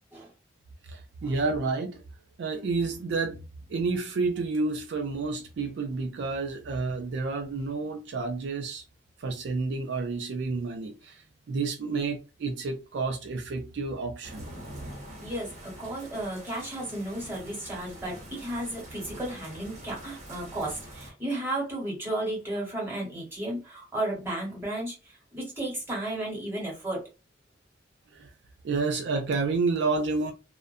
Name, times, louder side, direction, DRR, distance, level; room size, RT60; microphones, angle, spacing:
voice 1, 0.9-2.0 2.4-3.4 3.7-8.8 9.2-14.5 28.1-28.3 28.6-30.3, right 3 dB, 60° right, 0.3 m, -30 dB
sound 1, 14.2-21.1, right 1 dB, 35° right, 0.8 m, -45 dB
voice 2, 15.2-27.1, right 1 dB, 10° right, 1.1 m, -34 dB
2.4 x 2.1 x 2.5 m
head